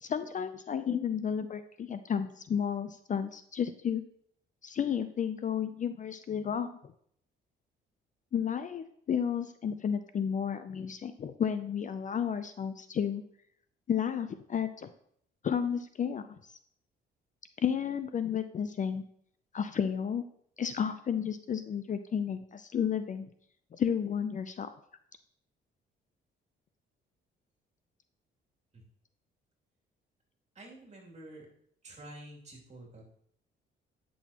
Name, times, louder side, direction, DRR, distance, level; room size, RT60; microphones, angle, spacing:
voice 1, 0.0-4.0 4.6-6.7 8.3-13.2 13.9-14.9 15.4-16.3 17.6-19.0 19.5-20.2 20.6-23.3 23.7-24.7, left 8 dB, 40° left, 10 dB, 0.5 m, -32 dB
voice 2, 30.5-31.5 31.8-33.0, right 1 dB, 35° right, -2 dB, 2.7 m, -49 dB
9.8 x 6.2 x 3.0 m, 0.67 s
cardioid pair, 90°, 20 cm